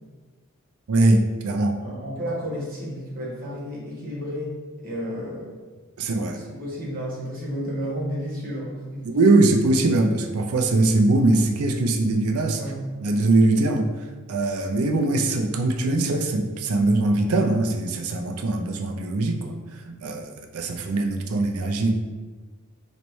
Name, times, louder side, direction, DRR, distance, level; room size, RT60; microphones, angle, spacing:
voice 1, 0.9-1.8 6.0-6.4 9.0-12.6 13.0-13.9 14.3-19.5 19.9-21.9, right 2 dB, 80° right, 3 dB, 0.5 m, -21 dB
voice 2, 1.8-5.5 6.3-9.1 12.5-12.9, equal, 40° right, -6 dB, 1.1 m, -32 dB
4.0 x 3.2 x 3.0 m, 1.4 s
head